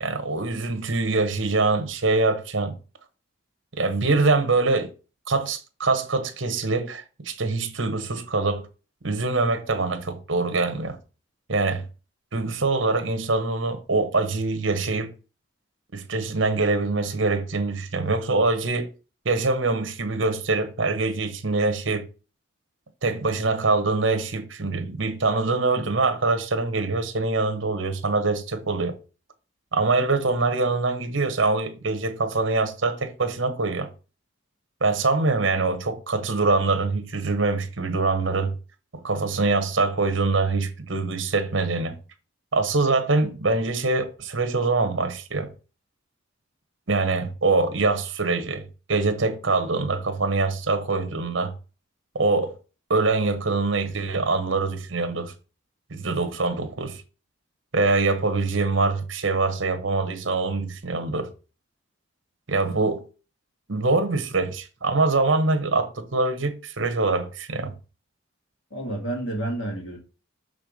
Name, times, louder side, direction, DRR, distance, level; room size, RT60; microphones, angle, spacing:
voice 1, 0.0-2.7 3.7-4.9 5.3-8.7 9.0-11.0 11.5-11.8 12.3-15.1 15.9-18.9 19.2-22.1 23.0-29.0 29.7-33.9 34.8-38.5 38.9-42.0 42.5-45.5 46.9-51.5 52.1-52.5 52.9-55.3 55.9-57.0 57.7-61.3 62.5-63.0 63.7-67.7, right 3 dB, 70° right, 1.1 m, -24 dB
voice 2, 68.7-70.0, right 1 dB, 70° left, 2.2 m, -30 dB
6.8 x 3.5 x 5.2 m
head